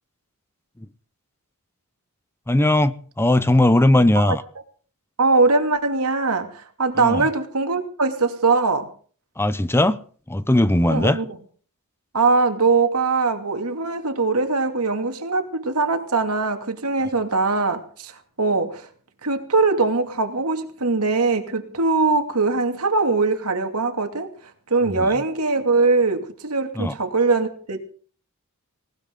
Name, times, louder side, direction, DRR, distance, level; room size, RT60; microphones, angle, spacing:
voice 1, 2.5-4.4 7.0-7.2 9.4-10.0 10.3-11.2 26.8-26.9, left 1 dB, 10° left, 0.7 m, -18 dB
voice 2, 5.2-8.9 10.9-11.4 12.1-18.9 19.2-27.8, right 3 dB, 90° right, 2.7 m, -21 dB
19.5 x 19.0 x 3.9 m
head